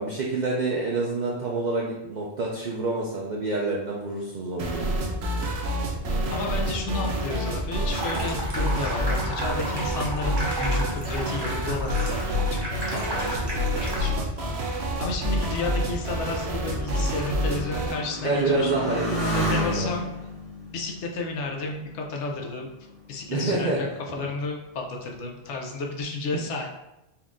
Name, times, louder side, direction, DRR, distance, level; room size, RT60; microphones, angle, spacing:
voice 1, 0.0-4.9 18.2-19.5 19.8-19.9 23.3-23.8, right 3 dB, 55° right, -3 dB, 0.6 m, -27 dB
sound 1, 4.6-18.0, equal, 70° right, 1.0 m, -28 dB
voice 2, 6.3-18.7 19.3-20.1 20.7-22.7 23.1-26.7, left 3 dB, 85° left, 1 dB, 1.0 m, -32 dB
Water tap faucet / Sink (filling or washing), 7.8-14.3, right 1 dB, 25° right, 0.8 m, -33 dB
Motorcycle, 14.0-22.4 23.2-23.8, equal, 55° left, 1.7 m, -33 dB
4.3 x 2.5 x 3.5 m, 0.93 s
omnidirectional pair, 1.2 m